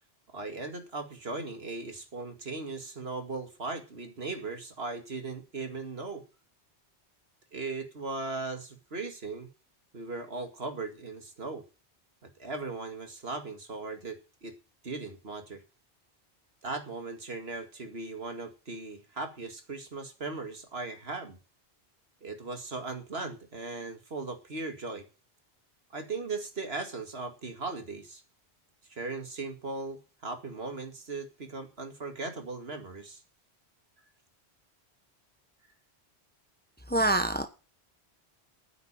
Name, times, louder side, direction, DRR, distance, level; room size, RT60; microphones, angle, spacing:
voice 1, 0.3-6.2 7.5-9.5 9.9-11.6 12.2-14.5 14.8-15.6 16.6-21.4 22.2-25.1 25.9-28.2 28.9-33.2, right 3 dB, 65° right, 2.3 m, -38 dB
voice 2, 36.9-37.4, right 2 dB, 10° left, 1.1 m, -25 dB
9.4 x 8.2 x 8.8 m
omnidirectional pair, 1.1 m